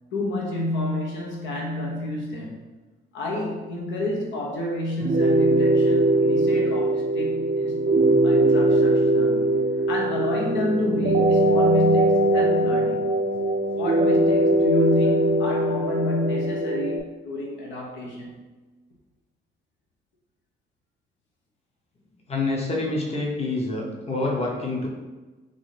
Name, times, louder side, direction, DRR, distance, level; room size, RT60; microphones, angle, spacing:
voice 1, 0.1-2.6 3.1-7.9 8.2-9.4 9.9-13.0 13.7-18.5, left 1 dB, 70° left, -1 dB, 0.8 m, -29 dB
sound 1, 5.0-17.0, right 1 dB, 40° right, 0.5 m, -21 dB
voice 2, 22.3-24.9, left 2 dB, 30° left, -2 dB, 0.9 m, -27 dB
3.8 x 2.6 x 3.2 m, 1.2 s
cardioid pair, 90°, 20 cm